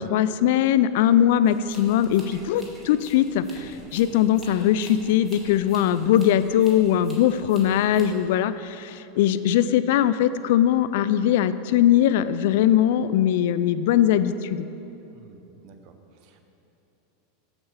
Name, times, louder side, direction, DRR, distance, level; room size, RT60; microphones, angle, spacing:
voice 1, 0.0-14.7, left 10 dB, 70° left, 14 dB, 0.3 m, -21 dB
sound 1, 1.4-8.0, right 1 dB, 15° right, 2.0 m, -48 dB
voice 2, 15.1-15.9 16.2-16.4, right 6 dB, 55° right, 6 dB, 0.8 m, -52 dB
7.8 x 7.2 x 4.9 m, 3.0 s
hypercardioid pair, 105°, 0 cm